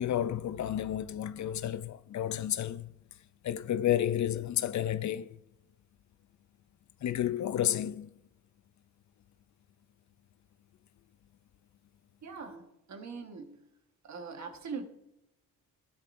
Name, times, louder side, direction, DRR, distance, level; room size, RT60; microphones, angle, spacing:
voice 1, 0.0-2.9 3.4-5.4 7.0-8.1, left 11 dB, 55° left, 0.5 m, -31 dB
voice 2, 12.2-13.6 14.0-14.8, right 5 dB, 50° right, 1.4 m, -42 dB
13.5 x 10.5 x 2.6 m
cardioid pair, 90°, 35 cm